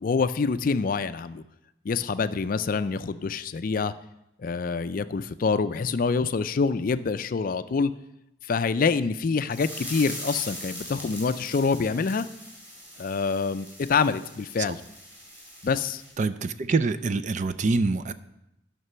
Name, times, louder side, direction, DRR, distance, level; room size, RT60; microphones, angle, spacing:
voice 1, 0.0-1.4 1.9-3.9 4.4-7.9 8.5-12.3 13.0-14.8 15.6-16.0, left 4 dB, 50° left, 12 dB, 0.4 m, -26 dB
sound 1, 9.5-16.1, equal, 10° right, 4.2 m, -41 dB
voice 2, 16.2-18.1, right 3 dB, 40° right, 12 dB, 0.4 m, -25 dB
11.0 x 6.0 x 5.6 m, 0.86 s
head